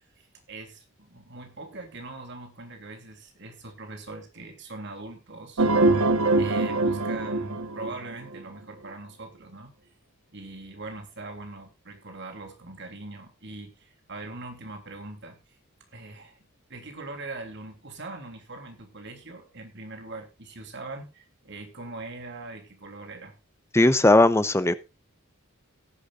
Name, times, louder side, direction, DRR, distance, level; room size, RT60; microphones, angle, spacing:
voice 1, 0.2-6.0 6.4-9.7 10.3-15.4 15.9-23.3, right 2 dB, 55° right, 3.2 m, -41 dB
sound 1, 5.6-8.4, right 2 dB, 85° right, 1.3 m, -23 dB
voice 2, 23.7-24.7, left 2 dB, 10° left, 0.7 m, -18 dB
18.0 x 10.5 x 2.5 m
head